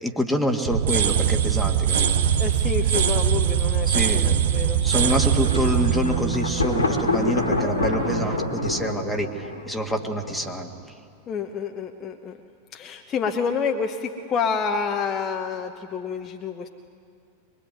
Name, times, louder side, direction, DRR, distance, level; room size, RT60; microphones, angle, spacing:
voice 1, 0.0-2.2 3.9-4.4 4.8-10.7, equal, ahead, 2 dB, 2.0 m, -27 dB
sound 1, 0.7-7.5, right 8 dB, 60° right, 1.2 m, -22 dB
voice 2, 2.4-4.8 11.3-12.4 12.7-16.7, left 6 dB, 25° left, 4 dB, 1.1 m, -28 dB
sound 2, 4.9-10.0, right 10 dB, 30° right, 0.8 m, -35 dB
Thunder, 5.0-10.8, left 2 dB, 75° left, 2.1 m, -28 dB
24.0 x 21.5 x 9.5 m, 2.4 s
figure-of-eight pair, 90°, 0 cm